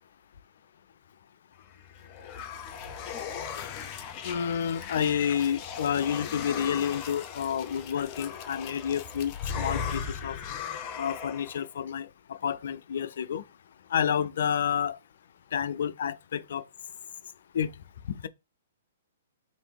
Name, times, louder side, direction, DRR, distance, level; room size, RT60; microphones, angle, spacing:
sound 1, 1.7-11.7, left 7 dB, 35° left, 0.8 m, -37 dB
voice 1, 4.2-10.4 11.0-13.4 13.9-15.0 15.5-16.6 17.5-17.7, left 8 dB, 60° left, 0.4 m, -29 dB
3.4 x 2.6 x 4.5 m
figure-of-eight pair, 120°, 0 cm